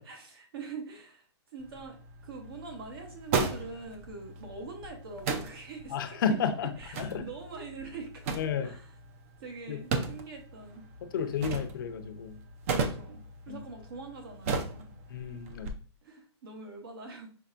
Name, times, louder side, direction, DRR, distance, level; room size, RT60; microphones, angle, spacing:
voice 1, 0.0-6.4 6.8-9.0 9.4-10.8 11.1-11.3 12.7-14.9 16.0-17.3, right 4 dB, 55° right, 3 dB, 1.0 m, -44 dB
sound 1, 1.6-15.7, right 4 dB, 30° right, 0.5 m, -37 dB
voice 2, 5.9-6.7 7.0-7.2 8.3-8.7 9.7-9.8 11.1-12.4 13.5-13.6 15.1-15.7, left 6 dB, 45° left, 7 dB, 0.6 m, -31 dB
5.6 x 3.2 x 2.5 m, 0.40 s
hypercardioid pair, 160°, 15 cm